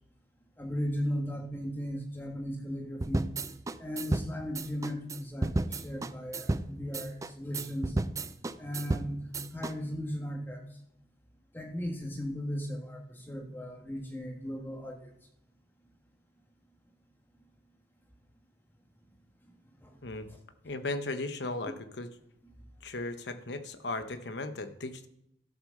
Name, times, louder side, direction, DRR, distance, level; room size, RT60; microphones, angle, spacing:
voice 1, 0.6-3.3 3.8-7.9 8.6-9.3 9.5-10.6 11.5-15.1 19.8-19.9 20.3-20.4, equal, 10° left, 1 dB, 1.6 m, -36 dB
sound 1, 3.0-9.7, right 2 dB, 20° right, 0.4 m, -33 dB
voice 2, 20.6-22.1 22.8-25.1, left 2 dB, 75° left, 10 dB, 1.0 m, -36 dB
12.5 x 6.3 x 6.6 m, 0.81 s
head